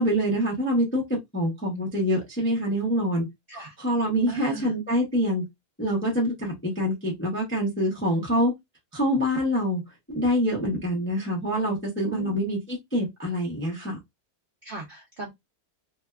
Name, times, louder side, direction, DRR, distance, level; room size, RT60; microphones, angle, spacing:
voice 1, 0.0-3.3 3.8-5.4 5.8-8.5 8.9-9.8 10.1-14.0, equal, 15° left, 0.4 m, -25 dB
voice 2, 4.3-4.7 12.0-12.4 14.6-15.3, right 2 dB, 60° right, 0.5 m, -37 dB
2.7 x 2.2 x 2.2 m
omnidirectional pair, 1.6 m